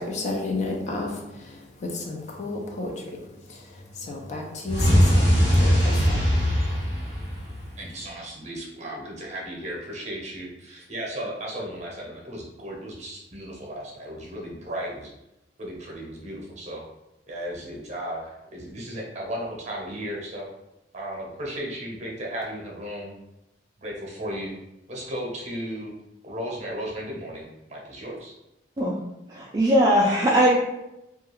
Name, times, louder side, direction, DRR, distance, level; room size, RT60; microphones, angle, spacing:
voice 1, 0.0-3.2 3.5-6.2, left 2 dB, 40° left, 0 dB, 0.4 m, -32 dB
sound 1, 4.7-7.8, equal, 90° left, 1.0 m, -20 dB
voice 2, 7.8-15.1 15.6-16.8 17.3-20.4 20.9-23.1 23.8-24.5 24.9-25.9 26.2-28.3, equal, 40° right, -2 dB, 0.7 m, -35 dB
voice 3, 29.3-30.6, equal, 25° right, -5 dB, 0.3 m, -20 dB
2.3 x 2.3 x 2.9 m, 0.91 s
head